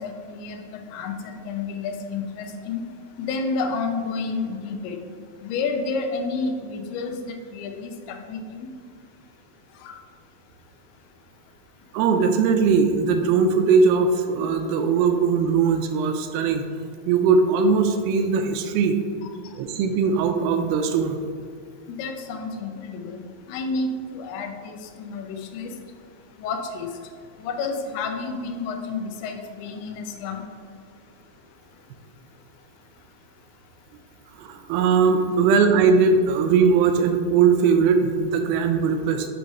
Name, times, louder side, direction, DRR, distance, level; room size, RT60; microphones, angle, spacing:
voice 1, 0.0-2.8 3.2-5.0 5.4-8.7 9.8-10.0 19.2-19.3 21.9-23.2 23.5-25.7 26.4-26.9 27.4-30.4, left 4 dB, 90° left, 4 dB, 2.7 m, -30 dB
voice 2, 11.9-16.6 17.1-19.0 19.6-21.2 34.4-39.3, right 5 dB, 80° right, 6 dB, 2.1 m, -20 dB
8.5 x 3.1 x 5.3 m, 2.1 s
omnidirectional pair, 4.5 m